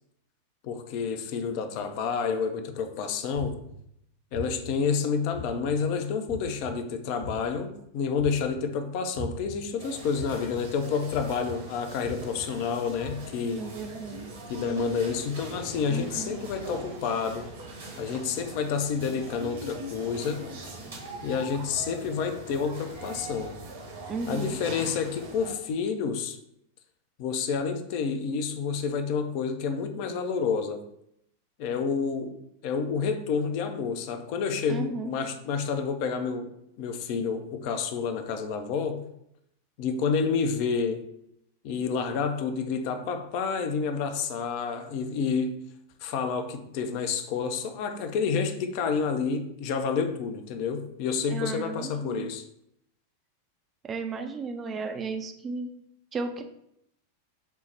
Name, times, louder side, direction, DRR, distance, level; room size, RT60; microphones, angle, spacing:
voice 1, 0.6-3.6 4.3-13.6 14.5-17.5 18.0-20.4 21.2-23.5 24.3-26.4 27.2-30.8 31.6-32.4 32.6-36.5 36.8-39.0 39.8-41.0 41.6-45.6 46.0-52.4, left 5 dB, 45° left, 7 dB, 0.4 m, -29 dB
sound 1, 3.3-3.8 4.3-4.7 5.3-5.7 6.3-6.7 7.2-7.6 8.2-8.6 9.1-9.6 10.1-10.6 11.1-11.5 12.0-12.4 13.0-13.1, right 2 dB, 85° right, 1.5 m, -39 dB
sound 2, 9.8-25.5, right 1 dB, 60° right, 0.9 m, -42 dB
voice 2, 13.6-14.3 15.9-16.3 24.1-24.6 34.7-35.1 51.3-52.3 53.8-55.7 56.1-56.4, right 4 dB, 25° right, 6 dB, 0.3 m, -34 dB
4.2 x 2.0 x 3.2 m, 0.76 s
figure-of-eight pair, 90°, 0 cm